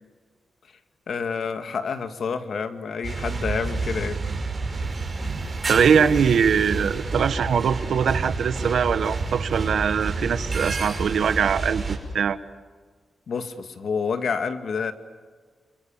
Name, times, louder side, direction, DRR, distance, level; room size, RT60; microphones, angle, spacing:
voice 1, 1.1-4.2 13.3-14.9, left 5 dB, 70° left, 8 dB, 2.1 m, -28 dB
sound 1, 3.0-12.0, right 3 dB, 35° right, 5.7 m, -29 dB
voice 2, 5.7-12.4, right 7 dB, 85° right, 12 dB, 1.3 m, -22 dB
29.0 x 27.0 x 7.3 m, 1.6 s
wide cardioid pair, 100°, 0 cm